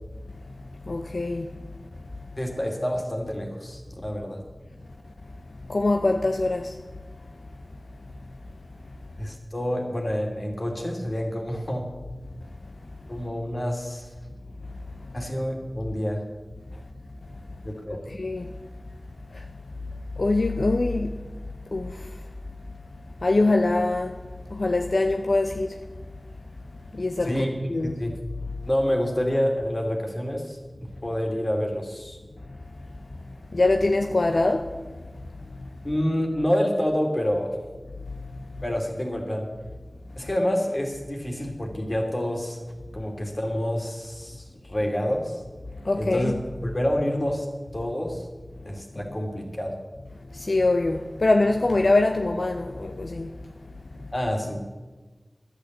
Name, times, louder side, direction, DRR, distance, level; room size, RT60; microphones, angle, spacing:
voice 1, 0.9-1.5 5.7-6.7 18.1-18.5 20.2-21.2 21.7-22.0 23.2-24.2 24.5-25.8 26.9-27.3 27.7-28.0 33.5-34.7 45.8-46.3 50.3-53.3, left 2 dB, 75° left, 0.7 m, -23 dB
voice 2, 2.4-4.4 9.2-11.9 13.1-14.1 15.1-16.2 17.6-18.0 27.3-28.1 28.7-32.2 35.8-37.5 38.6-39.5 40.2-45.4 45.9-46.4 46.6-47.5 47.7-48.3 48.6-49.8 54.1-54.6, equal, 40° left, 2.7 m, -28 dB
11.5 x 8.8 x 7.9 m
wide cardioid pair, 45°, 0 cm